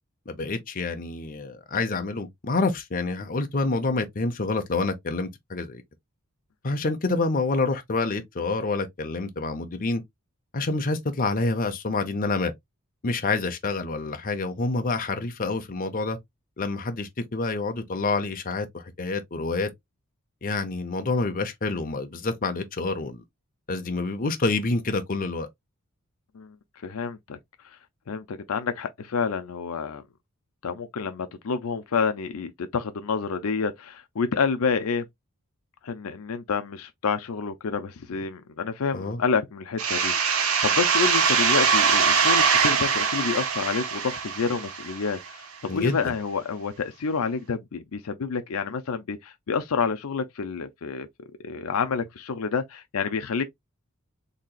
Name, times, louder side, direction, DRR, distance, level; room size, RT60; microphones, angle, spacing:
voice 1, 0.3-5.8 6.6-10.0 10.5-12.5 13.0-16.2 16.6-19.7 20.4-23.2 23.7-25.5 38.9-39.2 45.7-46.0, left 3 dB, 40° left, 0.7 m, -27 dB
voice 2, 26.8-27.4 28.1-30.0 30.6-35.1 35.8-40.1 40.6-51.1 51.4-53.4, left 5 dB, 75° left, 0.5 m, -28 dB
sound 1, 39.8-45.3, right 6 dB, 70° right, 0.9 m, -22 dB
4.0 x 2.9 x 2.3 m
head